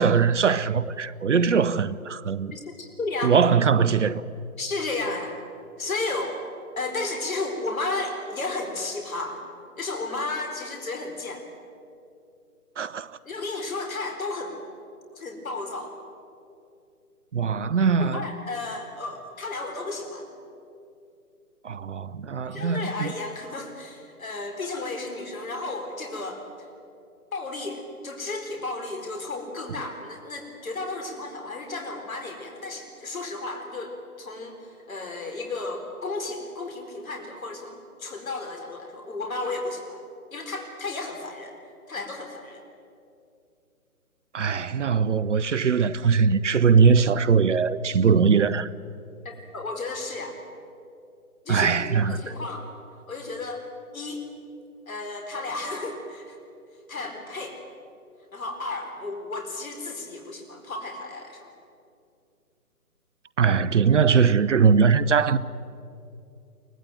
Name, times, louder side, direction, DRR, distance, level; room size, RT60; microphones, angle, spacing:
voice 1, 0.0-2.5 3.2-4.2 12.8-13.1 17.3-18.2 21.6-23.1 44.3-48.7 51.5-52.2 63.4-65.4, right 6 dB, 55° right, 0.7 m, -21 dB
voice 2, 2.5-3.4 4.6-5.4 5.8-6.4 6.8-9.4 9.8-11.4 13.2-14.6 15.1-15.9 18.0-20.3 22.4-26.4 27.3-40.0 40.3-41.5 41.9-42.6 49.2-50.4 51.4-52.7 53.1-53.6 53.9-54.2 54.9-56.4 56.9-57.6 58.3-61.5, left 3 dB, 65° left, 4.5 m, -33 dB
23.5 x 19.0 x 9.3 m
figure-of-eight pair, 145°, 45 cm